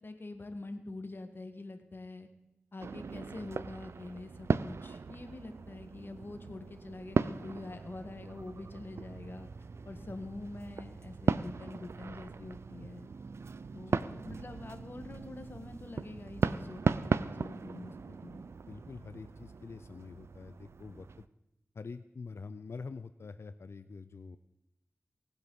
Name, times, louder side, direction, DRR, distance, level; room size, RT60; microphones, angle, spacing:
voice 1, 0.0-2.3 2.7-9.5 9.8-13.1 13.7-18.4, left 2 dB, 55° left, 7 dB, 1.5 m, -45 dB
sound 1, 2.8-21.3, right 5 dB, 80° right, 0.4 m, -37 dB
voice 2, 13.7-14.1 18.7-21.3 21.7-24.4, left 4 dB, 75° left, 12 dB, 0.5 m, -46 dB
18.5 x 7.9 x 5.5 m, 0.89 s
cardioid pair, 45°, 4 cm